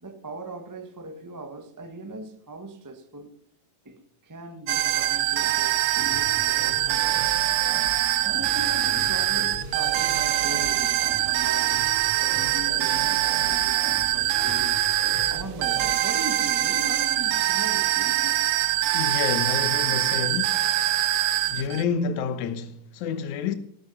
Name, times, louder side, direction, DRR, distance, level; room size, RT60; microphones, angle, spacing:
voice 1, 0.0-3.4 3.8-7.2 8.2-11.8 12.2-14.8 15.3-18.4, right 1 dB, 15° right, 0.7 m, -39 dB
sound 1, 4.7-21.8, right 14 dB, 85° right, 2.2 m, -24 dB
sound 2, 6.0-15.9, right 2 dB, 60° right, 3.9 m, -39 dB
voice 2, 18.9-20.7 21.5-23.5, left 6 dB, 80° left, 2.4 m, -29 dB
18.5 x 9.5 x 7.1 m
omnidirectional pair, 3.5 m